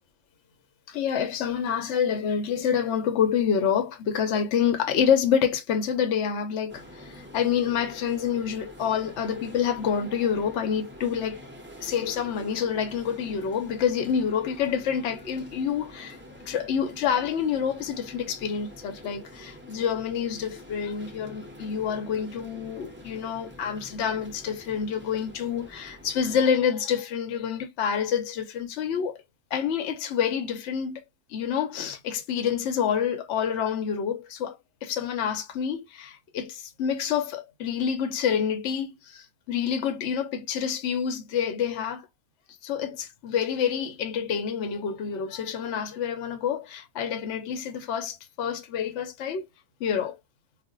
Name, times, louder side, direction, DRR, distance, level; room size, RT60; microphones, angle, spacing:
voice 1, 0.9-11.4 11.8-16.2 16.5-29.2 29.5-31.0 31.3-42.0 42.6-49.5 49.8-50.2, left 7 dB, 60° left, 0.9 m, -27 dB
sound 1, 6.7-26.4, equal, 10° right, 0.5 m, -46 dB
2.5 x 2.2 x 3.7 m
omnidirectional pair, 1.6 m